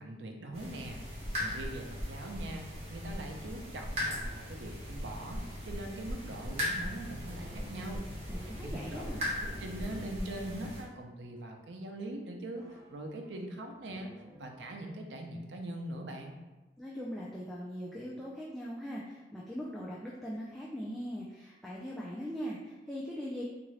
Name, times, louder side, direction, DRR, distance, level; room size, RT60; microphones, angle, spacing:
voice 1, 0.0-8.1 8.6-9.3 9.6-16.3, right 1 dB, 85° right, 2 dB, 0.6 m, -42 dB
sound 1, 0.5-10.8, left 1 dB, 35° right, 1.1 m, -38 dB
sound 2, 5.7-11.9 12.6-14.7, left 1 dB, 20° right, 0.7 m, -55 dB
voice 2, 8.3-9.3 16.8-23.4, equal, ahead, -6 dB, 0.3 m, -40 dB
3.7 x 2.5 x 3.2 m, 1.1 s
head